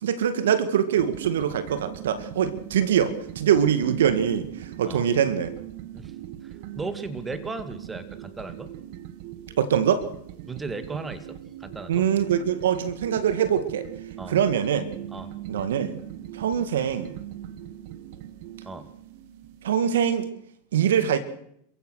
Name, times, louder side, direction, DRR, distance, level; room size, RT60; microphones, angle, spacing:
voice 1, 0.0-5.5 9.6-10.0 11.9-13.9 14.3-14.9 15.5-16.0 16.3-17.1 19.6-20.3 20.7-21.2, right 9 dB, 80° right, 12 dB, 2.1 m, -23 dB
sound 1, 0.9-19.8, right 12 dB, 60° right, 1.7 m, -41 dB
voice 2, 6.4-8.7 10.5-12.1 14.2-14.4 15.1-15.3 18.6-18.9, right 3 dB, 15° right, 11 dB, 2.2 m, -36 dB
28.0 x 15.5 x 6.5 m, 0.71 s
hypercardioid pair, 110°, 0 cm